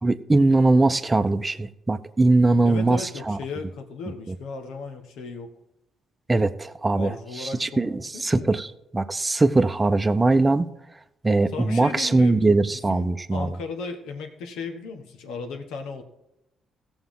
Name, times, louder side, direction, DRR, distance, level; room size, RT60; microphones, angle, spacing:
voice 1, 0.0-3.4 4.3-4.4 6.3-8.7 8.9-10.7 11.2-13.6, right 2 dB, 20° right, 10 dB, 0.7 m, -21 dB
voice 2, 2.6-5.5 6.9-8.5 11.5-12.5 12.7-16.0, left 4 dB, 90° left, 5 dB, 1.4 m, -36 dB
17.0 x 7.0 x 3.8 m, 0.86 s
cardioid pair, 90°, 0 cm